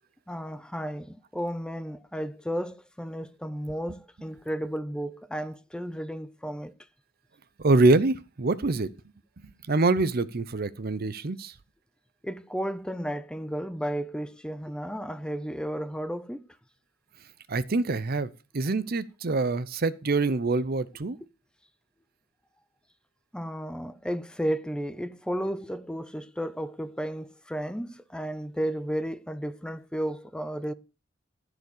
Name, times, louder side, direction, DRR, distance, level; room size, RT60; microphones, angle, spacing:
voice 1, 0.3-6.7 12.2-16.5 23.3-30.7, equal, 5° left, 0.5 m, -33 dB
voice 2, 7.6-8.9 9.7-11.5 17.5-21.2, right 3 dB, 50° right, 0.7 m, -25 dB
14.5 x 5.0 x 6.7 m
head